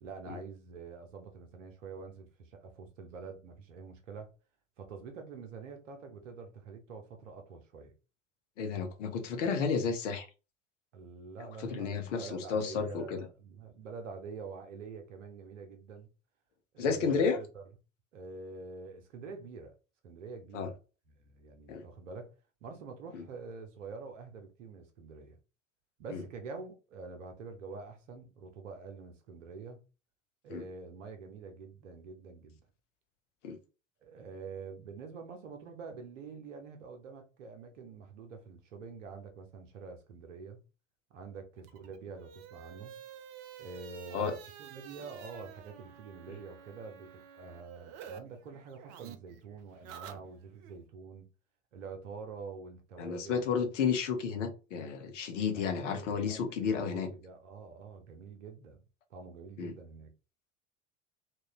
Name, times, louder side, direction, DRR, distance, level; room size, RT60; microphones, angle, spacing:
voice 1, 0.0-4.3 4.8-7.9 10.9-16.1 16.7-17.6 18.1-19.7 20.0-20.8 21.1-22.3 22.6-25.4 26.0-29.8 30.4-32.6 34.0-40.6 41.1-43.0 43.6-51.3 51.7-53.4 55.5-56.4 56.7-58.8 59.1-60.1, right 4 dB, 65° right, 0.8 m, -46 dB
voice 2, 8.6-10.3 11.6-13.2 16.8-17.4 20.5-20.7 21.7-21.8 23.1-23.2 26.1-26.2 30.5-30.6 33.4-33.6 44.1-44.3 53.0-57.1 59.6-59.7, left 5 dB, 65° left, 0.8 m, -32 dB
sound 1, 41.6-48.2 48.5-50.7, right 8 dB, 40° right, 0.5 m, -50 dB
3.0 x 2.2 x 3.0 m
figure-of-eight pair, 75°, 40 cm